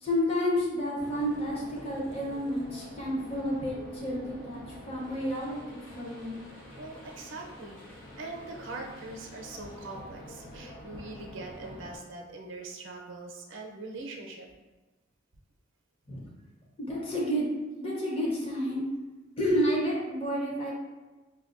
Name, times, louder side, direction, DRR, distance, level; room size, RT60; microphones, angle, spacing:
voice 1, 0.0-6.4 16.1-16.2 16.8-17.5 17.8-18.8 19.4-20.7, equal, 30° left, -5 dB, 0.7 m, -30 dB
sound 1, 1.0-12.0, left 1 dB, 90° left, 1.0 m, -47 dB
voice 2, 6.8-14.5, right 2 dB, 70° right, 0 dB, 0.5 m, -42 dB
5.8 x 2.2 x 2.5 m, 1.2 s
head